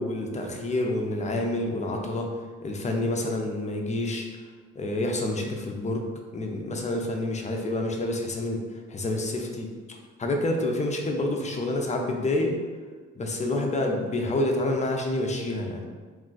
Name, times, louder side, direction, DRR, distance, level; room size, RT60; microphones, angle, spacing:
voice 1, 0.0-2.3 2.6-4.3 4.8-6.0 6.3-8.6 8.9-12.5 13.2-15.8, left 1 dB, 25° left, 2 dB, 0.5 m, -28 dB
2.5 x 2.3 x 3.8 m, 1.4 s
cardioid pair, 90°, 30 cm